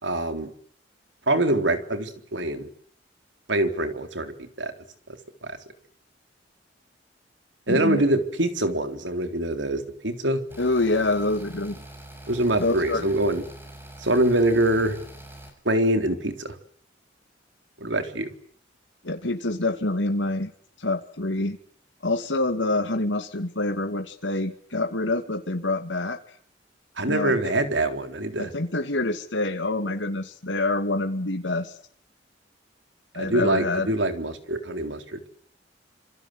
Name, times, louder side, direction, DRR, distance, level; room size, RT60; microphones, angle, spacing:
voice 1, 0.0-0.5 1.3-2.7 3.5-4.7 5.4-5.6 7.7-10.4 12.3-13.4 14.0-15.0 15.7-16.5 17.8-18.3 27.0-28.5 33.2-35.3, right 1 dB, 85° right, 7 dB, 3.9 m, -24 dB
voice 2, 7.7-8.0 10.6-11.8 12.6-13.1 19.0-20.5 20.8-21.6 22.0-26.2 27.1-27.5 28.4-31.7 33.1-33.9, left 2 dB, 90° left, 5 dB, 2.4 m, -26 dB
sound 1, 10.5-15.5, right 1 dB, 15° right, 6.8 m, -44 dB
27.0 x 26.0 x 8.1 m, 0.62 s
head